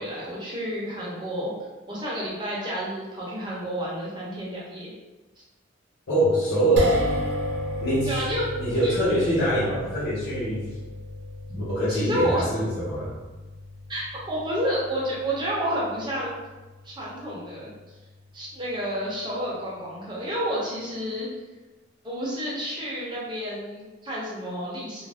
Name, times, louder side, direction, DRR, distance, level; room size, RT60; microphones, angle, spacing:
voice 1, 0.0-1.5 1.9-4.9 8.1-8.4 8.8-9.0 11.9-12.5 13.9-16.3 16.8-17.7 18.3-21.3 22.0-25.1, equal, 25° right, -6 dB, 0.8 m, -30 dB
voice 2, 6.1-7.0 7.8-8.2 8.6-10.6 11.5-13.1, right 1 dB, 75° left, -10 dB, 0.9 m, -24 dB
sound 1, 6.8-19.1, equal, 65° right, 0.5 m, -34 dB
2.5 x 2.0 x 3.3 m, 1.2 s
head